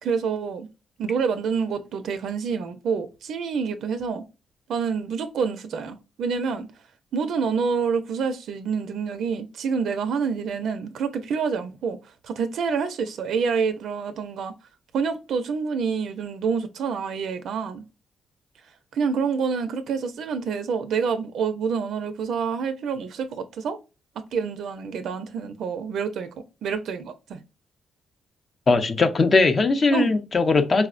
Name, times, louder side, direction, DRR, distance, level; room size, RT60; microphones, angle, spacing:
voice 1, 0.0-0.7 1.0-4.3 4.7-6.7 7.1-12.0 12.2-14.5 14.9-17.8 18.9-23.8 24.3-26.3 26.6-27.4 29.9-30.1, right 5 dB, 75° right, 0.4 m, -27 dB
voice 2, 28.7-30.9, left 3 dB, 40° left, 0.5 m, -19 dB
4.2 x 2.0 x 2.4 m
cardioid pair, 95°, 0 cm